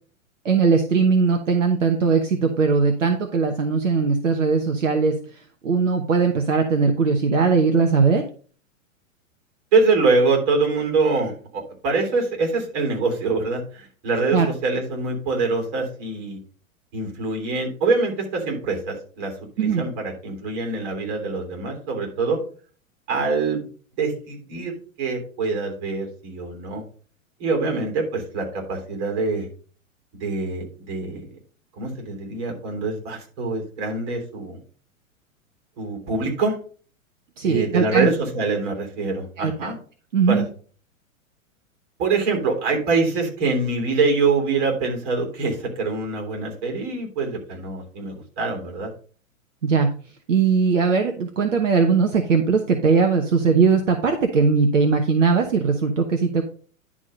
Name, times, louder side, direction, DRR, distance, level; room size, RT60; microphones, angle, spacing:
voice 1, 0.4-5.2 5.6-8.2 14.3-14.5 19.6-19.8 37.4-38.1 39.4-39.5 40.1-40.5 49.6-49.9 50.3-56.4, right 5 dB, 65° right, 4 dB, 1.1 m, -19 dB
voice 2, 9.7-16.4 16.9-22.4 23.1-23.6 24.0-24.7 25.0-26.8 27.4-29.4 30.2-31.2 31.8-34.6 35.8-36.6 37.4-39.8 40.3-40.4 42.0-48.9, right 3 dB, 35° right, 2 dB, 3.3 m, -24 dB
10.5 x 3.7 x 5.3 m, 0.43 s
figure-of-eight pair, 105°, 41 cm